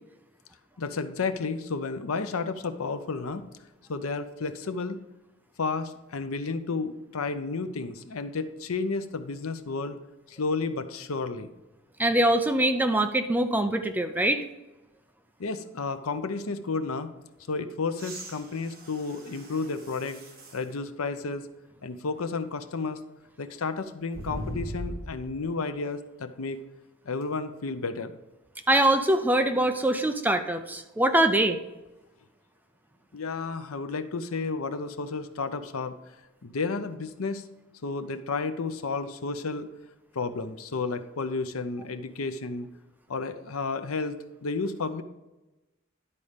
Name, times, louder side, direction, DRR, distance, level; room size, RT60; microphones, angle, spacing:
voice 1, 0.8-3.4 3.9-5.0 5.6-10.0 10.3-11.5 15.4-17.1 17.5-20.2 20.5-21.5 21.8-23.0 23.4-26.6 27.0-28.2 33.1-36.0 36.4-37.4 37.8-39.7 40.1-42.7 43.1-44.2 44.4-45.0, left 4 dB, 80° left, 10 dB, 0.7 m, -32 dB
voice 2, 12.0-14.4 28.7-31.6, right 1 dB, 10° right, 7 dB, 0.4 m, -23 dB
sound 1, 17.9-20.7 21.3-21.4 24.1-25.4 27.2-27.3, right 1 dB, 45° right, 1.4 m, -40 dB
11.0 x 4.2 x 5.0 m, 1.0 s
head